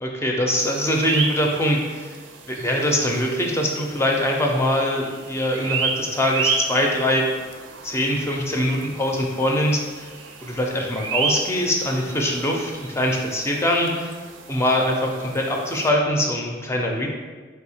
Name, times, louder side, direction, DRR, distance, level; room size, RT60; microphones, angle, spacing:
voice 1, 0.0-2.2 2.5-7.3 7.8-10.1 10.4-14.1 14.5-17.1, left 1 dB, 15° left, 0 dB, 0.4 m, -23 dB
sound 1, 0.6-15.9, right 5 dB, 75° right, 0.4 m, -32 dB
3.5 x 2.7 x 4.2 m, 1.4 s
head